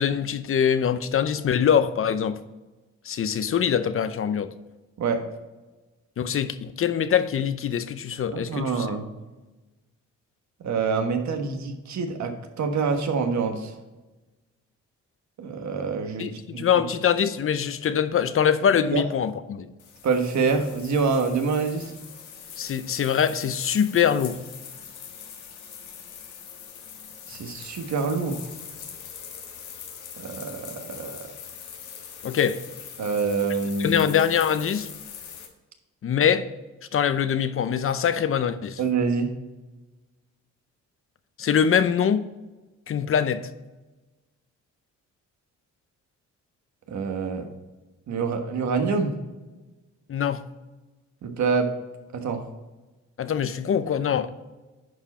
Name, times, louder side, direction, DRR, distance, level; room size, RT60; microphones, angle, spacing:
voice 1, 0.0-2.4 3.1-4.5 6.2-8.9 16.2-19.7 22.6-24.4 32.2-32.6 33.8-34.9 36.0-36.5 36.9-38.8 41.4-42.2 42.9-43.5 50.1-50.4 53.2-54.3, left 8 dB, 45° left, 0.7 m, -23 dB
voice 2, 8.3-9.0 10.6-13.7 15.4-16.8 18.9-19.0 20.0-21.9 27.3-28.5 30.2-31.3 33.0-34.1 38.8-39.3 46.9-47.5 48.1-49.1 51.2-51.7 52.1-52.4, right 4 dB, 70° right, 1.4 m, -26 dB
sound 1, 19.8-35.5, left 7 dB, 90° left, 1.5 m, -42 dB
10.5 x 4.8 x 4.3 m
cardioid pair, 110°, 29 cm